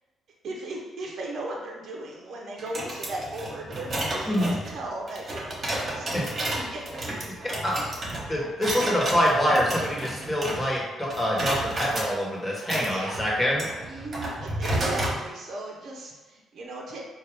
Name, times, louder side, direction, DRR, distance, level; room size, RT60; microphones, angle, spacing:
voice 1, 0.4-7.0 8.2-8.4 12.5-12.6 12.9-13.2 13.9-17.1, right 2 dB, 65° right, -1 dB, 0.7 m, -37 dB
sound 1, 2.6-10.8 11.1-12.1 12.6-15.2, right 1 dB, 40° right, 1.2 m, -31 dB
voice 2, 4.3-4.6 6.1-6.2 7.6-7.8 8.3-13.7, equal, 10° left, -4 dB, 1.3 m, -25 dB
4.2 x 2.5 x 3.4 m, 1.2 s
cardioid pair, 90°, 0 cm